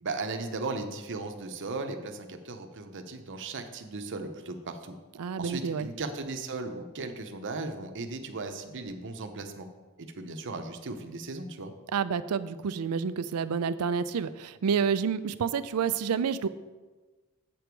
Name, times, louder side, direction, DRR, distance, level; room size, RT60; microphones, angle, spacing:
voice 1, 0.0-4.9 5.4-9.7 10.0-11.7, right 3 dB, 55° right, 6 dB, 0.8 m, -37 dB
voice 2, 5.2-5.9 11.9-16.5, right 6 dB, 85° right, 13 dB, 0.4 m, -29 dB
7.7 x 6.9 x 4.6 m, 1.3 s
head